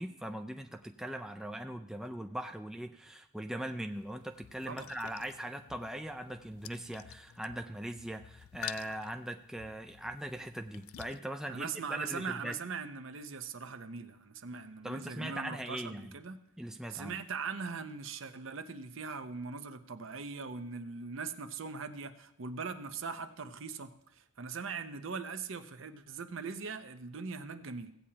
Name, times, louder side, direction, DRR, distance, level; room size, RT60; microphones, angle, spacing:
voice 1, 0.0-12.5 14.8-16.1 16.6-17.1, right 1 dB, 5° right, 0.3 m, -40 dB
sound 1, 3.9-11.2, left 12 dB, 85° left, 0.3 m, -50 dB
voice 2, 11.5-16.4 16.9-27.9, right 5 dB, 70° right, 0.7 m, -41 dB
16.5 x 8.6 x 2.8 m
head